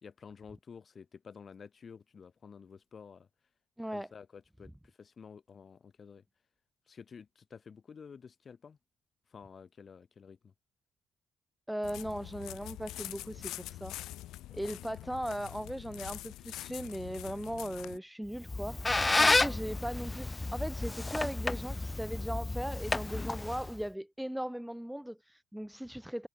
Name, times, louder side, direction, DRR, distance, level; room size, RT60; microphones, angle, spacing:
voice 1, 0.0-3.3 3.9-6.2 6.9-8.8 9.3-10.5 19.5-19.6, left 6 dB, 45° left, 1.8 m, -51 dB
voice 2, 3.8-4.1 11.7-14.0 14.5-18.8 19.2-26.3, equal, 5° right, 2.4 m, -38 dB
sound 1, 11.8-18.0, left 15 dB, 90° left, 1.7 m, -44 dB
Squeak, 18.3-23.8, left 2 dB, 20° left, 0.4 m, -31 dB
cardioid pair, 90°, 0 cm